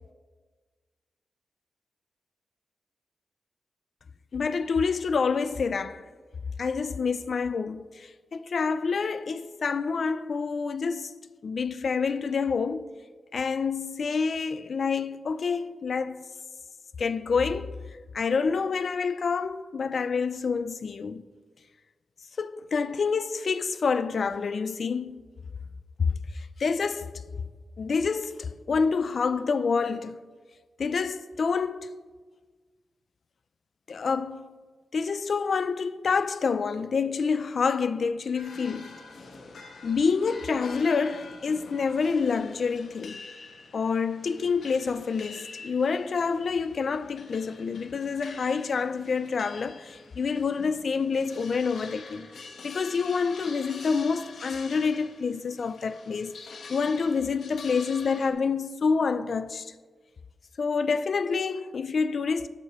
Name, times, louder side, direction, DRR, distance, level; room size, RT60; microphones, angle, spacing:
voice 1, 4.3-6.1 6.6-11.2 11.4-12.9 13.3-16.3 17.0-17.8 18.1-21.2 22.4-25.2 26.0-27.2 27.8-30.2 30.8-32.0 33.9-34.5 34.9-38.9 39.8-43.2 43.7-52.3 52.6-56.4 56.7-59.7 60.6-62.5, left 5 dB, 60° left, 0.4 m, -27 dB
sound 1, 38.4-58.3, left 4 dB, 85° left, 1.1 m, -46 dB
12.5 x 11.5 x 3.1 m
wide cardioid pair, 110°, 0 cm